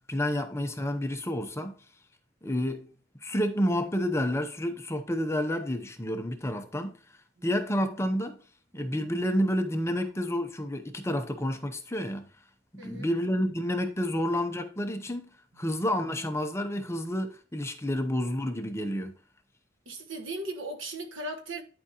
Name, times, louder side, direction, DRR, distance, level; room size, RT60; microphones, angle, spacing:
voice 1, 0.1-1.8 2.4-2.9 3.2-7.0 7.4-8.4 8.7-12.3 12.7-19.2, equal, 15° left, 0.7 m, -30 dB
voice 2, 12.8-13.1 15.5-15.6 19.8-21.6, right 2 dB, 80° right, 1.3 m, -37 dB
10.5 x 4.8 x 2.8 m
head